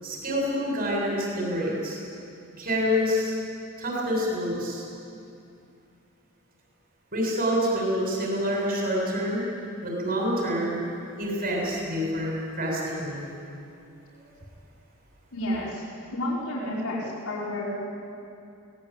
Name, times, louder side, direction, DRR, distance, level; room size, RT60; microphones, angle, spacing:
voice 1, 0.0-2.0 2.6-3.4 3.8-4.8 7.1-9.4 9.8-10.7 11.2-13.3, equal, 45° right, -2 dB, 7.2 m, -27 dB
voice 2, 15.3-15.8 16.1-17.7, left 1 dB, 85° left, -6 dB, 4.8 m, -30 dB
24.0 x 18.5 x 9.0 m, 2.6 s
head